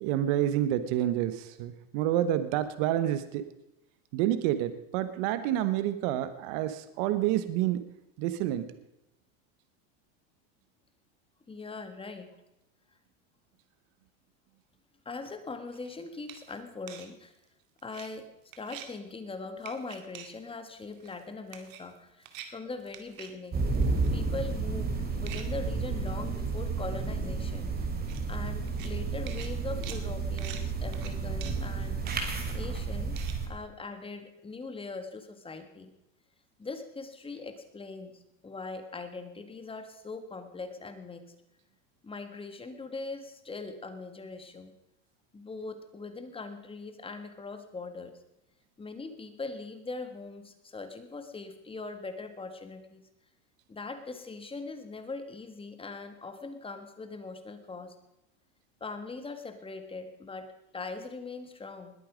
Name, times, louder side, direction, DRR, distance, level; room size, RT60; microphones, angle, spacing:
voice 1, 0.0-3.4 4.1-7.8 8.2-8.7, right 12 dB, 60° right, 12 dB, 1.3 m, -28 dB
voice 2, 11.5-12.4 15.1-17.3 17.8-18.3 18.6-23.7 24.1-27.9 28.3-32.0 32.5-35.9 36.6-41.3 42.0-44.7 45.3-48.2 48.8-53.0 53.7-57.9 58.8-61.9, left 3 dB, 15° left, 8 dB, 1.7 m, -41 dB
sound 1, 15.7-15.9 16.3-16.6 16.9-17.1 17.8-18.1 18.5-18.9 19.6-20.3 20.8-21.2 21.5-22.0 22.2-22.5 22.8-23.3 23.7-24.1 25.2-25.7 26.3-26.4 26.7-26.8 26.9-27.0 28.0-28.3 28.7-28.9 29.3-33.4, right 10 dB, 80° right, 2.2 m, -46 dB
sound 2, 23.5-33.5, right 4 dB, 25° right, 2.9 m, -31 dB
20.5 x 8.7 x 5.1 m, 0.88 s
supercardioid pair, 130°, 40 cm